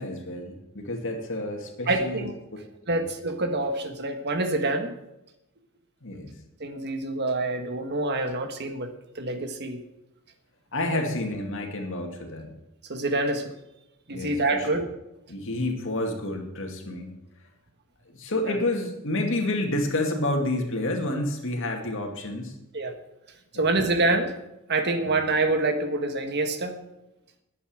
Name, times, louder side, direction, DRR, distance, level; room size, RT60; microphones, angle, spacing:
voice 1, 0.0-2.2 2.9-3.0 6.0-6.4 10.7-12.5 14.1-14.8 15.3-17.1 18.1-22.5 23.5-23.7 25.0-25.1, left 1 dB, 60° left, 3 dB, 2.4 m, -29 dB
voice 2, 1.9-2.3 2.9-4.9 6.6-9.8 10.9-11.0 12.9-13.5 14.1-14.8 18.5-18.6 22.7-22.9 23.5-24.3 24.7-26.8, right 2 dB, 50° right, 6 dB, 1.5 m, -26 dB
11.0 x 8.4 x 8.9 m, 0.92 s
head